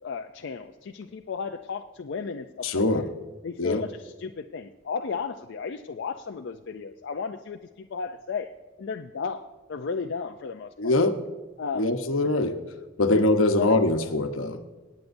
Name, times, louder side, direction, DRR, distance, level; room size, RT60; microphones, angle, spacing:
voice 1, 0.0-3.0 3.4-8.5 8.8-11.0 11.6-11.9 13.1-13.2 13.6-13.8, left 5 dB, 60° left, 5 dB, 0.4 m, -34 dB
voice 2, 2.6-3.0 3.6-3.8 10.8-11.2 11.7-12.6 13.0-14.6, left 2 dB, 80° left, 7 dB, 0.9 m, -23 dB
25.5 x 9.2 x 2.6 m, 1.3 s
head